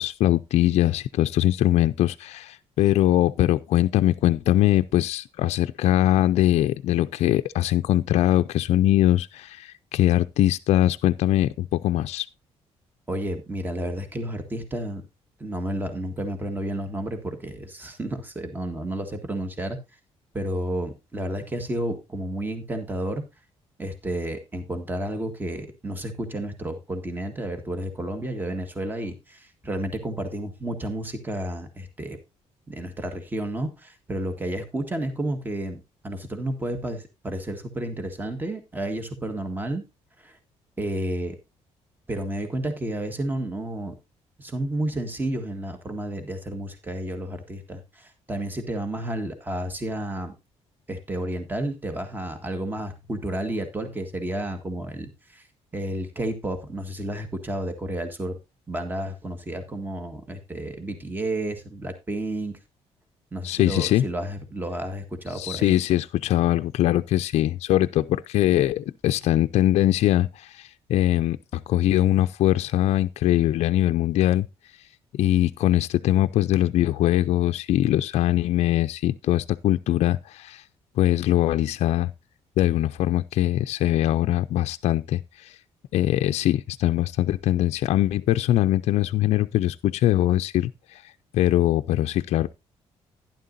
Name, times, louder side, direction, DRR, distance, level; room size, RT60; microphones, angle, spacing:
voice 1, 0.0-12.3 63.4-64.0 65.3-74.5 75.1-80.6 81.0-82.1 82.6-85.6 85.9-92.5, left 13 dB, 70° left, 0.4 m, -22 dB
voice 2, 13.1-15.0 15.4-19.8 20.3-23.2 23.8-32.2 32.7-39.8 40.2-40.4 40.8-41.4 42.1-43.9 44.4-50.3 50.9-55.5 55.7-58.4 58.7-62.6 63.3-65.7, right 1 dB, 15° right, 1.6 m, -31 dB
11.5 x 10.5 x 2.6 m
cardioid pair, 110°, 11 cm